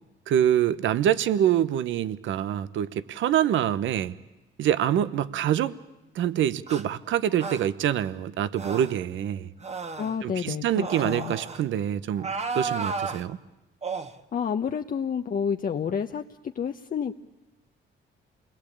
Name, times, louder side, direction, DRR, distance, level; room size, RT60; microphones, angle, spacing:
voice 1, 0.3-4.2 4.6-5.7 6.1-9.5 10.2-13.4, right 10 dB, 75° right, 1.0 m, -25 dB
sound 1, 6.7-6.8 7.4-7.7 8.6-9.0 9.6-10.2 10.8-11.6 12.2-13.2 13.8-14.1, right 4 dB, 35° right, 1.4 m, -33 dB
voice 2, 10.0-11.3 14.3-17.2, left 7 dB, 45° left, 0.9 m, -30 dB
28.0 x 21.0 x 8.6 m
cardioid pair, 90°, 20 cm